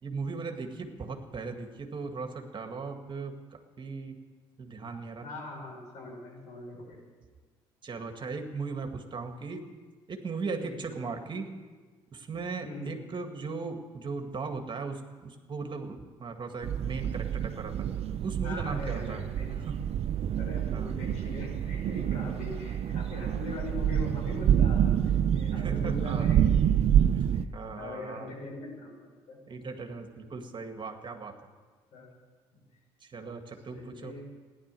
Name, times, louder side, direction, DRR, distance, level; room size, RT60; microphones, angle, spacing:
voice 1, 0.0-4.2 4.6-5.3 7.8-9.7 10.1-11.5 12.1-17.9 18.2-19.8 20.7-20.9 22.1-22.2 25.5-26.3 27.1-27.2 27.5-28.3 29.5-31.3 33.0-34.1, right 4 dB, 40° right, 5 dB, 1.9 m, -38 dB
voice 2, 5.2-7.0 12.6-12.9 18.4-19.5 20.4-26.6 27.8-29.4 31.9-32.1 33.7-34.3, left 2 dB, 70° left, -1 dB, 6.0 m, -41 dB
sound 1, 16.6-27.4, right 9 dB, 55° right, 0.6 m, -27 dB
15.0 x 11.0 x 7.6 m, 1.4 s
supercardioid pair, 65°, 12 cm